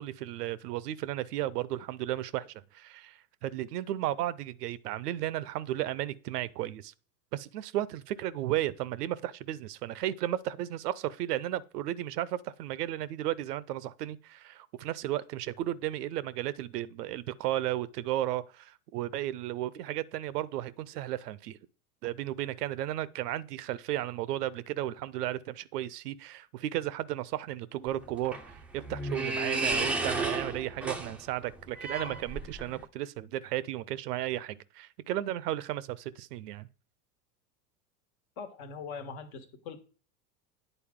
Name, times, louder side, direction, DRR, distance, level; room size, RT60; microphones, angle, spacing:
voice 1, 0.0-6.9 7.3-21.6 22.0-36.7, right 13 dB, 80° right, 0.6 m, -34 dB
sound 1, 27.9-32.8, right 3 dB, 5° right, 0.3 m, -33 dB
voice 2, 38.4-39.8, left 5 dB, 65° left, 1.3 m, -41 dB
9.0 x 4.0 x 3.6 m
hypercardioid pair, 95°, 46 cm